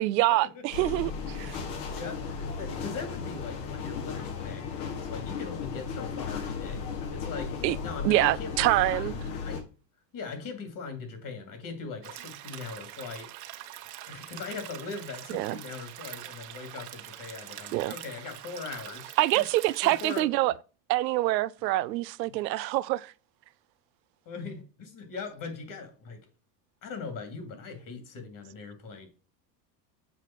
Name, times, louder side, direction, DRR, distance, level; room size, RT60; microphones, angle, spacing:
voice 1, 0.0-1.6 7.6-7.8 8.0-9.2 15.3-15.6 17.7-17.9 19.2-20.5 20.9-23.1, right 17 dB, 85° right, 0.6 m, -26 dB
sound 1, 0.7-9.6, left 5 dB, 70° left, 2.2 m, -35 dB
voice 2, 1.3-9.1 9.4-9.6 10.1-13.3 14.1-19.4 19.8-20.3 24.3-26.2 26.8-29.1, left 4 dB, 40° left, 2.8 m, -40 dB
sound 2, 12.0-20.2, right 14 dB, 60° right, 1.3 m, -44 dB
7.6 x 4.9 x 4.6 m
supercardioid pair, 105°, 50 cm